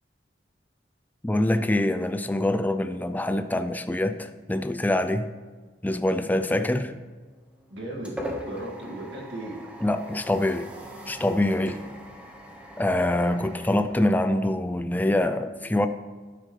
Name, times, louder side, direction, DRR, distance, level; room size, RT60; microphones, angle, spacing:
voice 1, 1.2-5.3 5.8-6.8 9.8-10.7 11.1-11.8 12.8-15.9, left 1 dB, 10° left, 9 dB, 0.4 m, -25 dB
sound 1, 7.3-14.7, equal, 5° right, 1.4 m, -41 dB
voice 2, 7.7-9.6, right 1 dB, 75° right, -2 dB, 2.3 m, -36 dB
11.5 x 9.9 x 3.3 m, 1.4 s
head